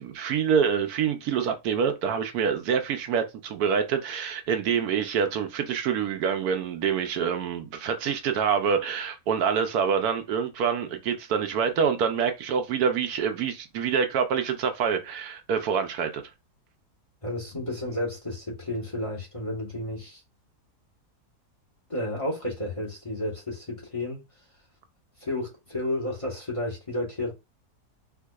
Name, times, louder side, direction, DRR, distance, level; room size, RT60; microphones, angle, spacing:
voice 1, 0.0-16.2, right 7 dB, 75° right, 1.1 m, -26 dB
voice 2, 17.2-20.2 21.9-24.2 25.2-27.3, left 1 dB, 20° left, 1.2 m, -32 dB
4.6 x 2.6 x 2.3 m
omnidirectional pair, 1.7 m